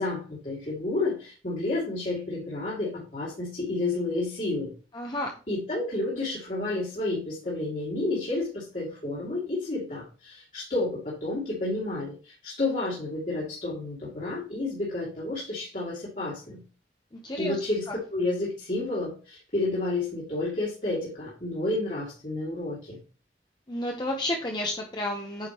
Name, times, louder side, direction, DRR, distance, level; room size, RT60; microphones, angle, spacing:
voice 1, 0.0-4.7 5.5-16.6 17.4-17.8 18.1-23.0, left 2 dB, 45° left, -7 dB, 2.4 m, -30 dB
voice 2, 4.9-5.3 17.2-17.6 17.9-18.0 23.7-25.5, left 1 dB, 25° left, 1 dB, 0.9 m, -31 dB
8.5 x 5.1 x 3.0 m, 0.35 s
head